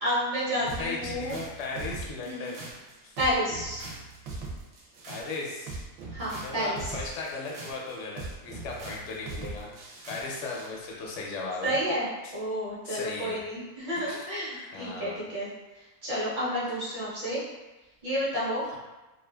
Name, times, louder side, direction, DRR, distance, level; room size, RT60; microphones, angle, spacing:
voice 1, 0.0-1.4 2.2-2.5 3.2-3.8 6.1-6.9 11.6-15.5 15.8-17.5 18.0-18.6, equal, 40° right, -9 dB, 0.8 m, -30 dB
voice 2, 0.7-2.6 3.0-3.1 5.1-5.8 6.4-9.7 10.1-11.8 12.2-12.3 12.8-13.5 14.0-14.3 14.5-15.2 18.7-18.8, left 3 dB, 65° left, -2 dB, 0.7 m, -37 dB
sound 1, 0.7-10.7, right 3 dB, 70° right, 0.9 m, -41 dB
2.4 x 2.3 x 2.2 m, 1.1 s
omnidirectional pair, 1.6 m